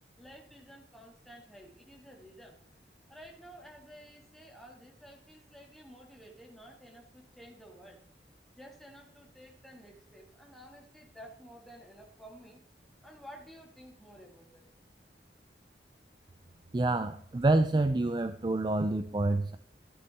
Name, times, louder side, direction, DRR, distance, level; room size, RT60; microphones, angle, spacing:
voice 1, 0.2-2.6 3.1-8.0 8.6-12.6 13.0-14.6, equal, ahead, -1 dB, 2.0 m, -52 dB
voice 2, 16.7-19.6, right 2 dB, 25° right, 10 dB, 0.4 m, -27 dB
13.5 x 10.5 x 3.5 m, 0.63 s
head